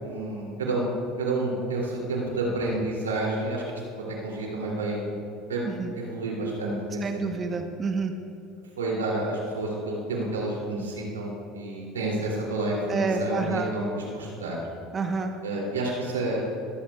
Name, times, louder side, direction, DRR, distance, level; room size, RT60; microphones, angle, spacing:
voice 1, 0.0-5.1 5.5-5.7 5.9-7.4 8.8-14.6 15.4-16.4, right 2 dB, 90° right, -3 dB, 2.8 m, -29 dB
voice 2, 7.0-8.1 12.9-13.7 14.9-15.4, right 4 dB, 35° right, 5 dB, 1.0 m, -29 dB
22.0 x 14.5 x 2.4 m, 2.8 s
hypercardioid pair, 75°, 0 cm